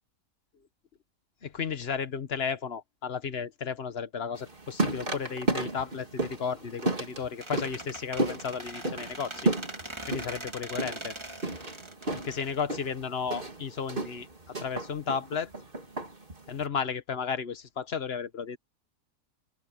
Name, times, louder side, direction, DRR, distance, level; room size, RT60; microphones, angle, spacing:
voice 1, 1.4-9.5 10.1-11.1 12.2-15.5 16.5-18.6, left 6 dB, 40° left, 1.4 m, -34 dB
sound 1, 4.4-16.7, right 2 dB, 35° right, 3.2 m, -33 dB
Squeak, 7.4-13.2, right 1 dB, 15° right, 3.1 m, -42 dB
open air
omnidirectional pair, 1.7 m